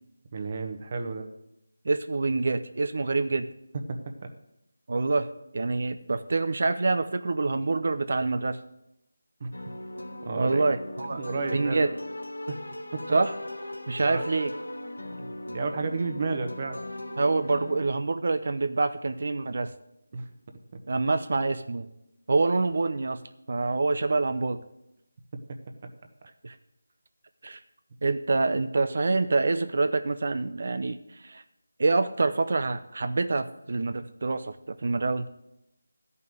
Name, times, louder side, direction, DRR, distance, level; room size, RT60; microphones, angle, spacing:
voice 1, 0.3-1.3 3.9-4.3 9.4-9.5 10.2-10.6 11.2-11.9 12.5-12.6 12.9-13.0 14.0-14.2 15.2-16.8 20.1-20.3 20.7-20.8, right 3 dB, 35° right, 5 dB, 1.2 m, -32 dB
voice 2, 1.8-3.5 4.9-5.3 5.5-8.6 10.4-11.2 11.5-11.9 13.1-13.3 13.9-14.5 17.2-19.7 20.9-21.9 22.3-23.2 23.5-24.6 26.4-26.6 27.4-27.6 28.0-31.4 31.8-35.3, right 3 dB, 50° right, 10 dB, 0.6 m, -26 dB
sound 1, 9.5-17.9, left 1 dB, 75° left, 1.2 m, -38 dB
12.0 x 5.6 x 7.9 m, 0.86 s
figure-of-eight pair, 165°, 0 cm